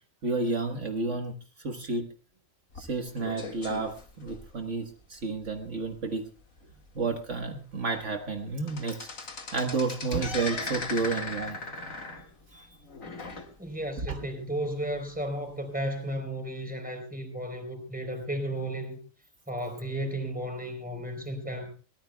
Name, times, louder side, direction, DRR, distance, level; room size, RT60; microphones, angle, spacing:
voice 1, 0.2-2.1 2.8-6.2 6.9-9.1 9.5-11.6 12.5-12.8 14.0-14.2, right 3 dB, 65° right, 1.7 m, -31 dB
sound 1, 2.7-4.9 5.4-5.6 5.9-6.0 6.6-6.7 7.3-7.4 7.7-8.1 8.4-13.9 14.3-14.4 15.2-15.3, left 3 dB, 80° left, 2.3 m, -38 dB
voice 2, 13.6-19.0 19.5-21.7, right 1 dB, 5° right, 3.9 m, -34 dB
23.0 x 18.5 x 2.3 m
omnidirectional pair, 1.4 m